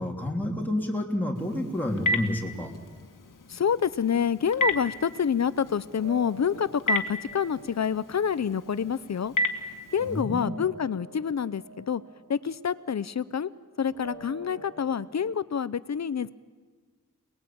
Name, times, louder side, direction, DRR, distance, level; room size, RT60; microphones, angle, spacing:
voice 1, 0.0-2.7 10.0-10.5, left 1 dB, 5° left, -1 dB, 3.3 m, -29 dB
Telephone, 1.4-10.2, left 1 dB, 90° left, 2.0 m, -33 dB
voice 2, 3.5-9.3 9.9-12.0 12.3-13.5 13.8-16.3, left 7 dB, 60° left, 16 dB, 0.8 m, -27 dB
sound 1, 4.7-15.1, right 3 dB, 70° right, 5.6 m, -49 dB
28.0 x 20.5 x 8.8 m, 1.5 s
wide cardioid pair, 140°, 31 cm